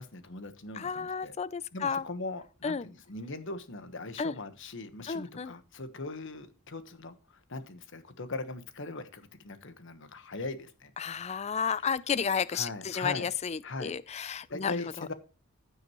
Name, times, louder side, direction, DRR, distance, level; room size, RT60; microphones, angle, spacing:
voice 1, 0.0-1.3 1.7-10.9 11.8-11.9 12.5-13.3 13.6-14.2 14.5-15.1, left 3 dB, 60° left, 1.2 m, -40 dB
voice 2, 0.8-2.0 2.6-2.8 4.2-4.3 5.1-5.5 11.0-14.7, left 6 dB, 30° left, 0.4 m, -32 dB
15.0 x 6.3 x 3.0 m
head